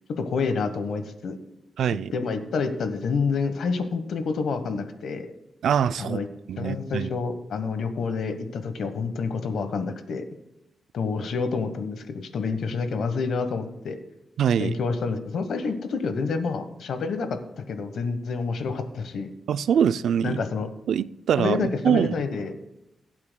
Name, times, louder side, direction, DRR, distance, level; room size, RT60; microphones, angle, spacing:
voice 1, 0.2-1.4 2.1-5.3 6.0-6.3 6.6-10.2 10.9-14.0 14.6-17.3 17.7-19.3 20.2-20.7 21.4-22.5, left 4 dB, 70° left, 1.2 m, -28 dB
voice 2, 1.8-2.1 5.6-6.2 6.5-7.1 14.4-14.7 19.5-20.4 20.9-22.1, right 8 dB, 80° right, 0.4 m, -23 dB
22.0 x 8.6 x 2.3 m
wide cardioid pair, 145°, 0 cm